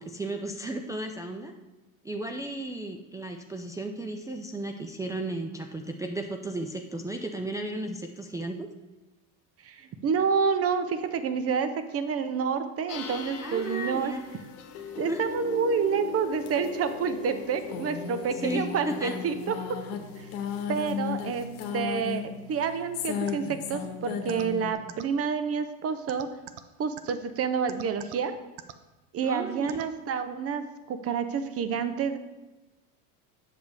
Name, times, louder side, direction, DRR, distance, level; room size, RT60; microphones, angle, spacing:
voice 1, 0.0-1.5 2.0-8.7 13.4-14.2 15.1-15.3 18.4-19.1 29.2-29.8, right 1 dB, 10° right, 2 dB, 0.4 m, -34 dB
voice 2, 9.6-14.1 15.0-19.6 20.2-20.3 20.7-26.3 26.8-28.3 29.1-32.2, right 6 dB, 35° right, 10 dB, 0.7 m, -29 dB
sound 1, 12.9-24.7, left 7 dB, 70° left, 1.2 m, -36 dB
sound 2, 23.3-23.4 24.3-24.4 24.9-25.0 26.1-26.6 27.0-27.1 27.7-28.1 28.6-28.7 29.7-29.8, right 14 dB, 70° right, 0.7 m, -40 dB
8.0 x 6.6 x 3.4 m, 1.1 s
hypercardioid pair, 90°, 43 cm